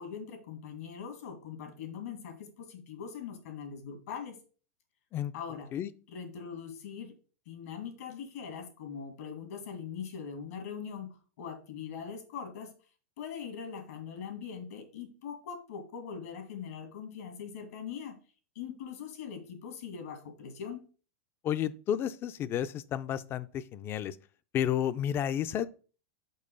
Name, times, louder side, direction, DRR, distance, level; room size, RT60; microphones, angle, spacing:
voice 1, 0.0-4.4 5.3-5.7 6.1-7.1 7.5-12.7 13.2-18.2 18.6-20.9, left 7 dB, 75° left, 2.1 m, -41 dB
voice 2, 21.4-24.2 24.5-25.7, left 10 dB, 30° left, 0.4 m, -31 dB
5.4 x 4.1 x 5.3 m
hypercardioid pair, 130°, 8 cm